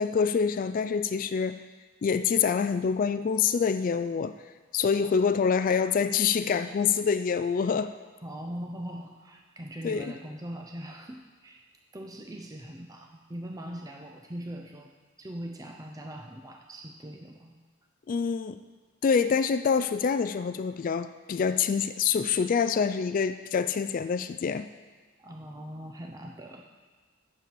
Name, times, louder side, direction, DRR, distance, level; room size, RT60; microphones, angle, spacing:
voice 1, 0.0-1.6 2.0-4.3 4.7-7.9 9.8-10.0 18.1-18.6 19.0-24.7, left 6 dB, 40° left, 11 dB, 0.3 m, -26 dB
voice 2, 8.2-11.6 11.9-14.9 15.2-17.6 25.2-26.6, right 1 dB, 15° right, 3 dB, 0.5 m, -41 dB
8.4 x 6.9 x 7.5 m, 1.4 s
head